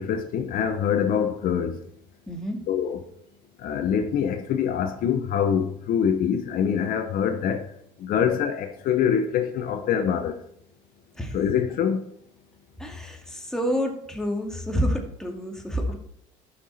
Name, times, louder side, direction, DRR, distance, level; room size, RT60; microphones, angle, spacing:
voice 1, 0.0-1.7 2.7-3.0 3.6-7.6 8.0-10.3 11.3-12.0, left 8 dB, 65° left, 1.0 m, -24 dB
voice 2, 2.3-2.6 11.1-11.4 12.8-16.0, equal, 5° left, 2.2 m, -29 dB
11.5 x 6.0 x 4.2 m
supercardioid pair, 85°, 16 cm